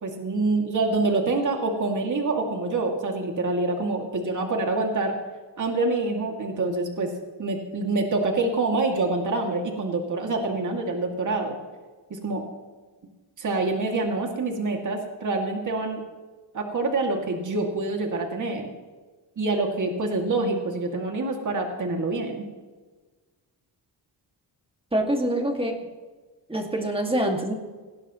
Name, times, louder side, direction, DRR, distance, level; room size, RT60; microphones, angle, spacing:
voice 1, 0.0-5.1 5.6-7.1 7.4-11.6 12.1-12.4 13.4-16.0 16.5-18.7 19.4-22.4, right 3 dB, 45° right, 2 dB, 2.4 m, -26 dB
voice 2, 24.9-25.7 26.5-27.5, right 1 dB, 15° right, 2 dB, 2.1 m, -25 dB
19.5 x 16.5 x 3.1 m, 1.3 s
wide cardioid pair, 145°, 42 cm